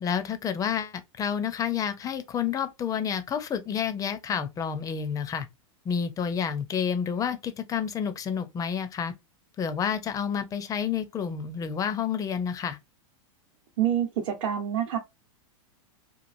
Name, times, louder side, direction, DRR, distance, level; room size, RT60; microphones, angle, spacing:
voice 1, 0.0-5.5 5.8-9.1 9.6-12.8, left 7 dB, 20° left, 0.4 m, -29 dB
voice 2, 13.8-15.0, right 10 dB, 55° right, 0.8 m, -27 dB
3.0 x 2.4 x 2.5 m
hypercardioid pair, 125°, 17 cm